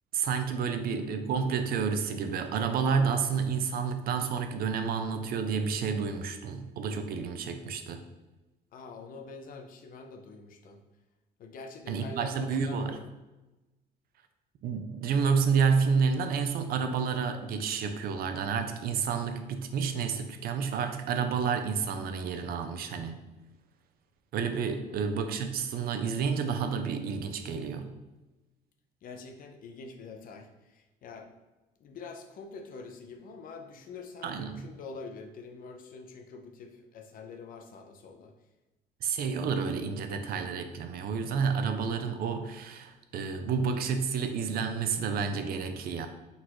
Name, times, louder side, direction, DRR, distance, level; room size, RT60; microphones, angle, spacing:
voice 1, 0.1-8.0 11.9-13.0 14.6-23.2 24.3-27.9 34.2-34.7 39.0-46.1, right 6 dB, 60° right, 7 dB, 0.5 m, -30 dB
voice 2, 8.7-10.8 11.4-13.1 24.8-25.0 29.0-31.3 31.8-38.3, left 4 dB, 55° left, 5 dB, 0.6 m, -45 dB
4.0 x 2.5 x 4.5 m, 1.1 s
cardioid pair, 110°, 17 cm